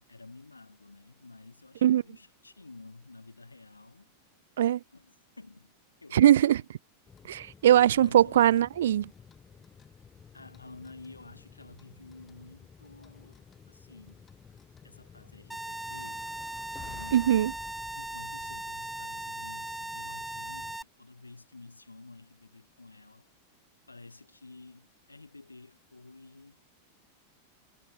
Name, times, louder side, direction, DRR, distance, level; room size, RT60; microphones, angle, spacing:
voice 1, 0.0-4.2 4.9-6.5 7.9-8.5 10.3-14.3 14.8-16.3 16.8-17.4 18.0-23.3 23.9-26.6, left 3 dB, 80° left, 7.0 m, -51 dB
voice 2, 6.1-6.6 7.3-9.1 17.1-17.5, right 11 dB, 60° right, 1.0 m, -21 dB
sound 1, 7.1-20.8, left 6 dB, 20° left, 3.2 m, -53 dB
sound 2, 15.5-20.8, right 1 dB, 5° right, 4.8 m, -38 dB
figure-of-eight pair, 90°, 0 cm